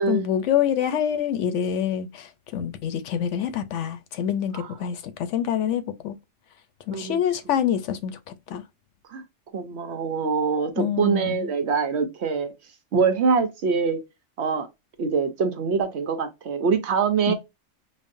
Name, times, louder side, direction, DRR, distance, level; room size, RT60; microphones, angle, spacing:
voice 1, 0.0-6.2 6.9-8.6 10.8-11.5 17.3-17.4, left 9 dB, 70° left, 0.8 m, -26 dB
voice 2, 9.5-12.5 12.9-14.0 14.4-14.7 15.0-17.3, right 5 dB, 60° right, 0.9 m, -24 dB
5.1 x 2.1 x 2.5 m
omnidirectional pair, 1.3 m